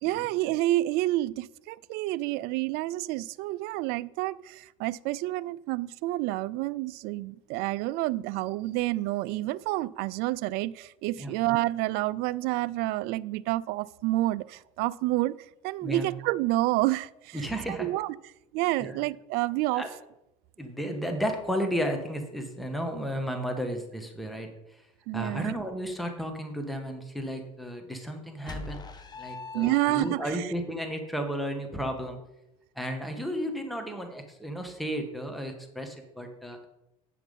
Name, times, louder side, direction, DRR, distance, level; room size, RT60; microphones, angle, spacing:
voice 1, 0.0-15.4 15.6-18.2 18.5-19.8 25.1-25.5 29.5-30.5, right 17 dB, 65° right, 19 dB, 0.4 m, -29 dB
voice 2, 17.3-17.9 18.8-19.0 19.7-19.9 20.6-24.9 25.1-28.8 29.2-32.2 32.7-36.7, equal, ahead, 4 dB, 1.4 m, -33 dB
sound 1, 28.5-30.6, left 3 dB, 25° left, 1.2 m, -41 dB
9.2 x 6.0 x 5.3 m, 0.91 s
supercardioid pair, 95°, 17 cm